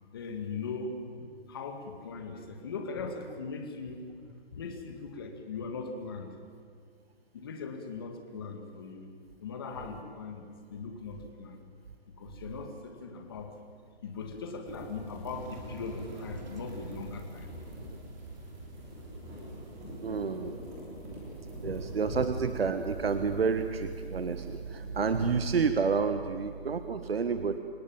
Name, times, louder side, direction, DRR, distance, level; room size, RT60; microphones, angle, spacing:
voice 1, 0.1-4.1 4.5-6.3 7.3-9.1 9.4-11.6 12.2-13.5 14.0-17.5, left 4 dB, 20° left, 4 dB, 2.0 m, -39 dB
sound 1, 14.6-25.7, equal, 10° right, 3.1 m, -46 dB
sound 2, 15.3-20.3, right 2 dB, 45° right, 2.7 m, -48 dB
voice 2, 20.0-20.6 21.6-27.6, right 5 dB, 65° right, 9 dB, 1.4 m, -29 dB
27.0 x 18.0 x 8.9 m, 2.2 s
hypercardioid pair, 175°, 32 cm